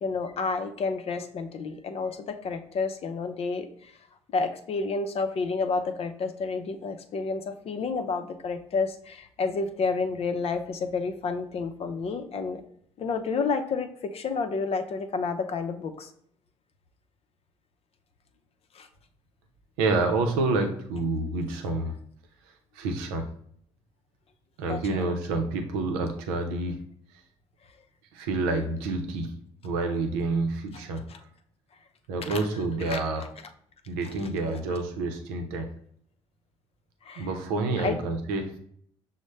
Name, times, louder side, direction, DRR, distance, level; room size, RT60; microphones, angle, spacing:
voice 1, 0.0-3.9 4.3-12.6 13.0-16.1 18.7-18.9 24.7-25.1 31.1-31.2 32.2-32.4 32.9-33.0 37.0-37.3 37.8-38.0, left 4 dB, 50° left, 7 dB, 0.6 m, -30 dB
voice 2, 19.8-21.9 22.7-23.3 24.6-26.8 28.1-29.4 29.6-31.0 32.1-33.3 33.9-35.7 37.2-38.6, right 3 dB, 85° right, 6 dB, 0.6 m, -28 dB
6.2 x 2.1 x 3.2 m, 0.64 s
hypercardioid pair, 50°, 13 cm